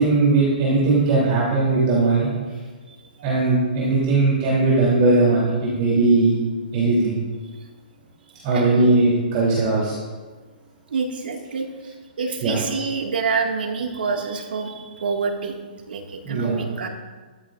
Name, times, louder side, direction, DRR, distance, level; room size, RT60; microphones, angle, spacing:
voice 1, 0.0-2.3 3.2-5.5 5.8-6.4 6.7-7.2 8.4-9.9 12.4-12.6 16.2-16.6, right 3 dB, 30° right, -7 dB, 3.3 m, -19 dB
voice 2, 8.5-9.0 10.9-11.7 12.2-15.5 15.9-16.9, right 5 dB, 75° right, 1 dB, 2.1 m, -27 dB
14.0 x 13.0 x 2.6 m, 1.4 s
hypercardioid pair, 170°, 5 cm